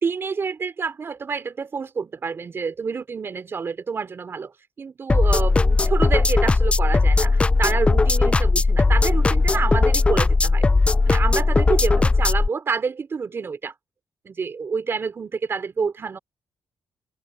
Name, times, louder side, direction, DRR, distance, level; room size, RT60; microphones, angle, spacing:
voice 1, 0.0-10.7 11.1-13.7 14.2-16.2, right 5 dB, 45° right, 3.8 m, -28 dB
sound 1, 5.1-12.5, left 3 dB, 20° left, 0.4 m, -18 dB
open air
cardioid pair, 95°, 6 cm